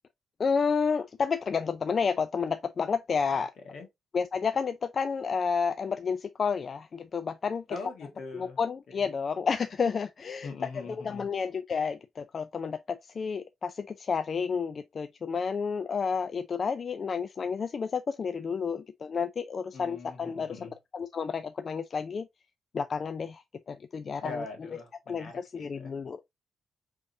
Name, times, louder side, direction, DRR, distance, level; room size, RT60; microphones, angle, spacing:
voice 1, 0.4-3.5 4.1-7.8 8.3-22.3 22.7-24.4 25.1-26.3, left 5 dB, 45° left, 0.3 m, -31 dB
voice 2, 7.7-8.6 8.9-9.0 10.4-11.3 19.7-20.7 24.2-25.9, left 3 dB, 65° left, 1.5 m, -42 dB
5.2 x 3.5 x 2.6 m
cardioid pair, 130°, 0 cm